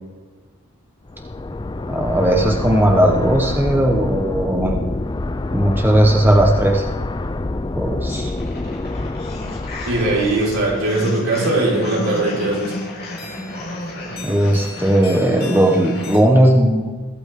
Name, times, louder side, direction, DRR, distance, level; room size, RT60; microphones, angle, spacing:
sound 1, 1.1-10.9, left 2 dB, 20° left, 0.4 m, -26 dB
voice 1, 1.9-4.7 5.5-6.8 7.7-8.3 14.2-16.9, right 1 dB, 10° right, 1 dB, 1.1 m, -16 dB
sound 2, 8.1-16.2, left 1 dB, 45° left, 3.6 m, -32 dB
voice 2, 9.9-12.7, right 2 dB, 75° right, -4 dB, 5.0 m, -20 dB
22.0 x 9.1 x 3.8 m, 1.4 s
head